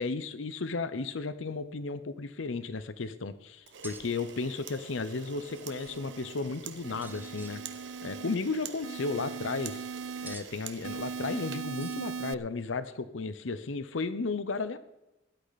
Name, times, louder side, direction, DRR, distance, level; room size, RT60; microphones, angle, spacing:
voice 1, 0.0-7.6 8.0-9.8 10.2-14.8, left 3 dB, 80° left, 13 dB, 0.7 m, -34 dB
Camera, 3.6-12.4, right 7 dB, 65° right, 1.2 m, -47 dB
sound 1, 3.8-4.0 5.4-6.0 7.0-7.6 8.7-9.3 10.2-10.5 11.6-12.2, right 2 dB, 10° right, 1.0 m, -50 dB
sound 2, 5.2-6.3 6.8-8.4 8.8-10.3 10.8-12.3, right 5 dB, 85° right, 0.4 m, -40 dB
17.0 x 11.5 x 4.1 m, 0.92 s
head